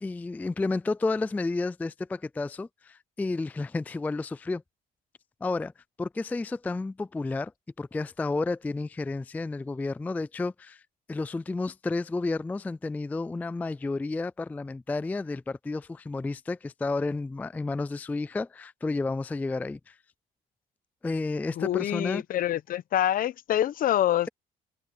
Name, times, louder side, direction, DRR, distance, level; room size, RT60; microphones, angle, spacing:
voice 1, 0.0-4.6 5.4-5.7 6.0-7.5 7.8-10.8 11.1-20.0 21.0-22.2, left 3 dB, 10° left, 0.3 m, -31 dB
voice 2, 21.6-24.3, left 12 dB, 55° left, 0.9 m, -26 dB
cardioid pair, 110°, 17 cm